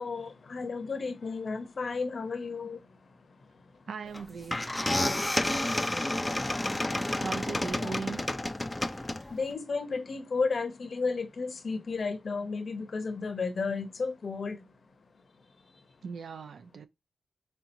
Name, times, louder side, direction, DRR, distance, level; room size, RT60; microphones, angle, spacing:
voice 1, 0.0-2.8 7.7-8.0 9.3-14.6, left 4 dB, 50° left, 0.7 m, -33 dB
voice 2, 3.9-4.6 7.2-8.2 16.0-16.9, right 5 dB, 80° right, 0.5 m, -38 dB
sound 1, 4.1-4.2 4.5-9.5, left 1 dB, 10° left, 0.4 m, -30 dB
4.3 x 3.7 x 2.7 m
wide cardioid pair, 155°, 0 cm